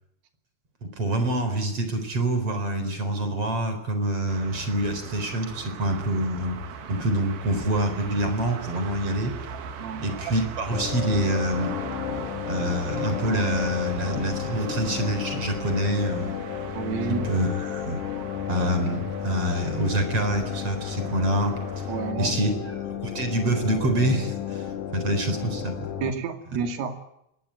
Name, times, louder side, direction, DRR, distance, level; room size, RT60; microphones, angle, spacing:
voice 1, 1.0-6.6 6.9-9.3 10.0-11.7 12.5-16.3 17.3-18.0 18.5-21.6 22.2-22.5 22.9-24.7 24.9-25.9, right 1 dB, 30° right, 8 dB, 4.5 m, -26 dB
sound 1, 4.3-22.1, right 6 dB, 55° right, 3.2 m, -40 dB
voice 2, 9.8-10.1 16.7-17.4 21.9-22.4 26.0-26.9, right 6 dB, 80° right, 5 dB, 5.0 m, -30 dB
sound 2, 10.7-26.1, left 9 dB, 65° left, 2.0 m, -32 dB
25.5 x 22.0 x 9.0 m, 0.82 s
omnidirectional pair, 5.7 m